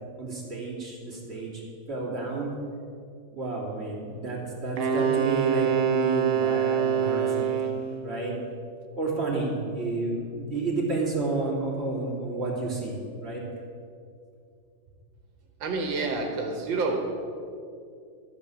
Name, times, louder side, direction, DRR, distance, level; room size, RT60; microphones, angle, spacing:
voice 1, 0.2-1.6 1.9-2.6 3.3-7.7 8.0-8.4 8.9-13.4, right 3 dB, 35° right, -5 dB, 3.4 m, -31 dB
Wind instrument woodwind instrument, 4.8-7.9, right 8 dB, 55° right, 1.3 m, -25 dB
voice 2, 15.6-17.0, right 3 dB, 85° right, 3 dB, 1.8 m, -28 dB
12.5 x 9.3 x 6.9 m, 2.5 s
omnidirectional pair, 2.0 m